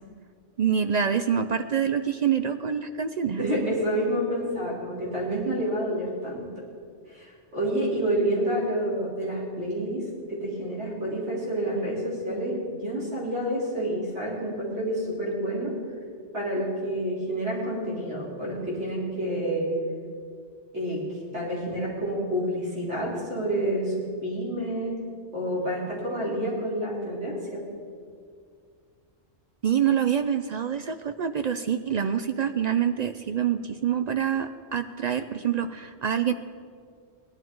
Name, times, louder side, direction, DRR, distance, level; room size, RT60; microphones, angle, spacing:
voice 1, 0.6-3.7 29.6-36.3, right 8 dB, 55° right, 9 dB, 0.4 m, -26 dB
voice 2, 3.4-6.4 7.1-10.0 10.3-15.7 16.3-19.7 20.7-21.0 21.3-23.9 24.2-25.0 25.3-27.6, right 1 dB, 80° right, -6 dB, 4.2 m, -28 dB
18.0 x 11.5 x 4.6 m, 2.1 s
omnidirectional pair, 1.2 m